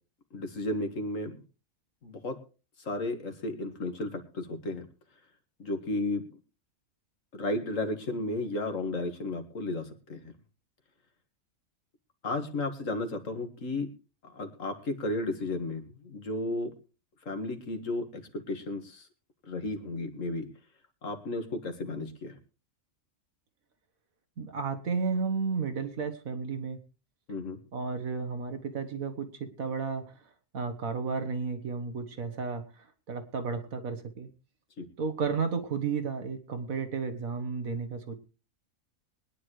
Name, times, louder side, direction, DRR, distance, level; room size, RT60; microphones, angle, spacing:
voice 1, 0.3-1.4 2.0-2.4 2.8-4.9 5.6-6.3 7.3-10.3 12.2-13.9 14.2-16.7 17.3-19.1 19.4-20.5 21.0-22.4 27.3-27.6 34.8-34.9, left 2 dB, 70° left, 7 dB, 2.1 m, -33 dB
voice 2, 24.4-26.8 27.7-30.1 30.5-32.6 33.1-34.3 35.0-38.2, right 5 dB, 85° right, 7 dB, 1.9 m, -32 dB
23.0 x 10.0 x 3.2 m, 0.33 s
omnidirectional pair, 1.4 m